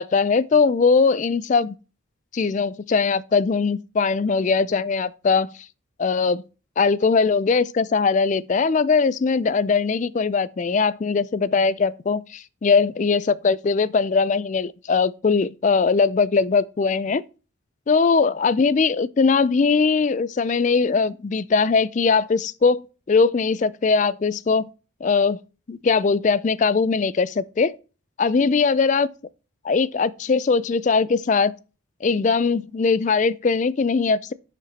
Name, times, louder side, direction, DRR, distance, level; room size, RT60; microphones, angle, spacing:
voice 1, 0.0-1.7 2.3-5.5 6.0-6.4 6.8-17.2 17.9-22.8 23.1-24.7 25.0-25.4 25.7-27.8 28.2-29.1 29.6-31.5 32.0-34.3, left 4 dB, 35° left, 0.3 m, -20 dB
10.5 x 5.1 x 4.1 m
head